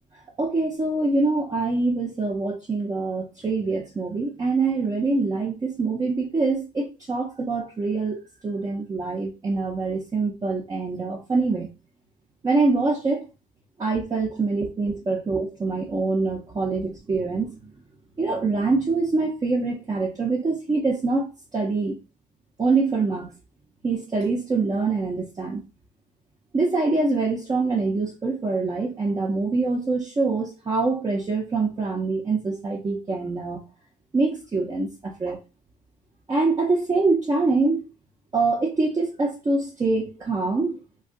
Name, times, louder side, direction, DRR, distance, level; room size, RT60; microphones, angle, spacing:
voice 1, 0.4-11.7 12.4-13.3 13.8-17.5 18.2-22.0 22.6-23.3 23.8-25.6 26.5-33.6 34.1-35.4 36.3-37.8 38.3-40.8, right 3 dB, 20° right, 0.6 m, -24 dB
2.5 x 2.3 x 3.6 m
cardioid pair, 110°, 17 cm